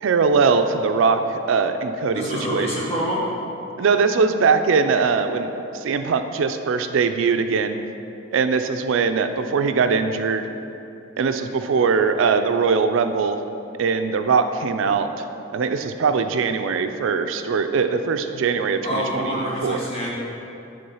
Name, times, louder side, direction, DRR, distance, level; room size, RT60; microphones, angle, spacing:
voice 1, 0.0-2.2 2.5-2.7 3.8-7.8 8.3-10.5 11.2-13.4 13.8-15.2 15.5-19.9, right 5 dB, 75° right, 8 dB, 0.4 m, -21 dB
voice 2, 2.1-3.3 18.8-20.1, equal, 30° left, -6 dB, 1.4 m, -26 dB
8.5 x 3.6 x 5.5 m, 2.8 s
head